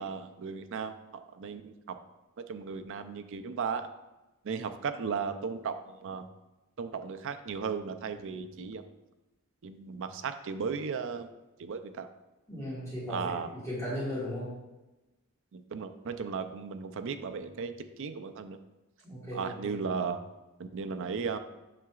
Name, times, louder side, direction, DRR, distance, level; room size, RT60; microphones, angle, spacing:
voice 1, 0.0-2.0 2.5-3.9 4.4-6.3 6.8-8.8 9.6-11.3 11.6-12.1 13.1-13.5 15.5-18.6 19.3-20.2 20.6-21.4, right 5 dB, 60° right, 9 dB, 0.4 m, -36 dB
voice 2, 12.5-13.4 13.6-14.5 19.0-19.8, equal, 15° left, -8 dB, 1.8 m, -36 dB
7.5 x 5.9 x 2.4 m, 1.0 s
head